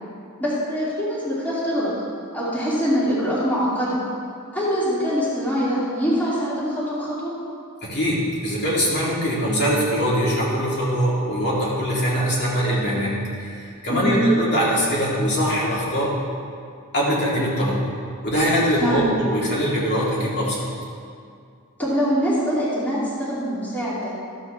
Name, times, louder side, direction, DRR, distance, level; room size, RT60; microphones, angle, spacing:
voice 1, 0.4-1.9 2.3-4.0 4.5-7.3 13.9-14.2 18.8-19.1 21.8-24.1, equal, 5° left, -10 dB, 2.3 m, -23 dB
voice 2, 7.8-16.1 16.9-17.8 18.2-20.7, equal, 50° left, -6 dB, 2.5 m, -22 dB
13.5 x 7.5 x 3.4 m, 2.3 s
head